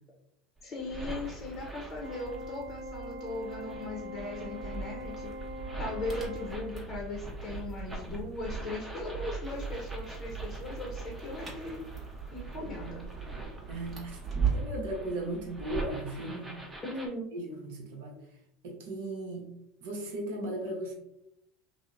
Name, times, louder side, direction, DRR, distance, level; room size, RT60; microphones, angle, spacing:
voice 1, 0.6-5.3 5.8-11.8 12.3-13.0 16.8-17.2, left 2 dB, 35° left, -1 dB, 0.7 m, -38 dB
sound 1, 0.6-2.5 3.3-17.1, right 2 dB, 10° right, 0.7 m, -44 dB
sound 2, 1.1-14.8, right 5 dB, 35° right, 1.0 m, -39 dB
Organ, 2.0-7.1, left 1 dB, 60° right, 0.4 m, -43 dB
voice 2, 13.4-14.2 14.5-16.6 17.3-18.2 18.6-19.5 19.8-20.9, right 1 dB, 80° right, 0 dB, 0.8 m, -37 dB
2.9 x 2.0 x 2.3 m, 0.77 s
hypercardioid pair, 90°, 0 cm